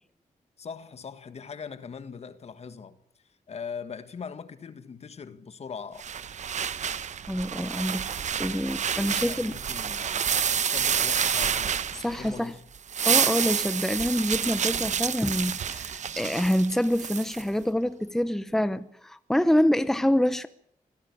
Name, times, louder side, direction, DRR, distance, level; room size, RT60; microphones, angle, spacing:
voice 1, 0.6-3.0 3.5-6.0 9.2-10.1 10.6-11.8 12.0-12.6, left 6 dB, 50° left, 1.6 m, -40 dB
sound 1, 6.0-12.4 12.7-17.4, right 7 dB, 60° right, 1.0 m, -28 dB
voice 2, 7.3-9.5 11.9-12.5 13.0-20.5, equal, 5° left, 0.8 m, -26 dB
25.5 x 16.5 x 8.5 m
wide cardioid pair, 135°, 14 cm